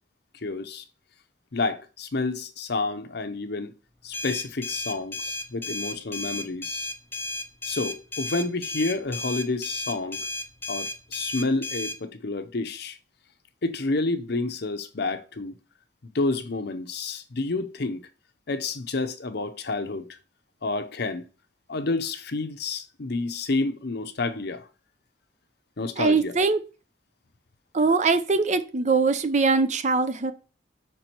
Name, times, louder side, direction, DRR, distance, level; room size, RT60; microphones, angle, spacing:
voice 1, 0.4-0.8 1.5-3.7 4.0-6.9 7.6-10.2 10.7-13.0 13.6-15.5 16.0-18.0 18.5-20.2 20.6-21.3 21.7-24.7 25.8-26.4, left 3 dB, 60° left, 0.7 m, -29 dB
sound 1, 4.1-12.0, left 2 dB, 10° left, 0.6 m, -33 dB
voice 2, 26.0-26.6 27.7-30.3, right 4 dB, 40° right, 0.7 m, -22 dB
6.1 x 4.5 x 4.3 m
head